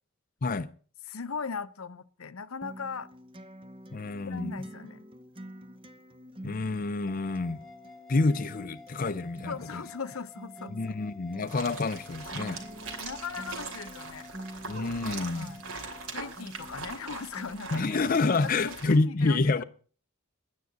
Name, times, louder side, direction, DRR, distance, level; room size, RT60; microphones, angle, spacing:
voice 1, 1.0-3.1 4.3-5.0 9.5-11.0 13.0-14.3 15.3-15.6 16.1-17.8 18.3-18.4 18.6-19.6, left 5 dB, 80° left, 0.8 m, -39 dB
Acoustic guitar, 2.6-18.6, right 1 dB, 25° right, 0.7 m, -47 dB
voice 2, 3.9-4.5 6.4-7.6 8.1-9.8 10.7-12.6 14.7-15.5 17.7-19.6, left 3 dB, 40° left, 0.5 m, -28 dB
sound 1, 7.1-16.1, left 3 dB, ahead, 1.8 m, -52 dB
sound 2, 11.5-19.0, right 3 dB, 90° right, 2.8 m, -41 dB
10.5 x 9.5 x 7.8 m
head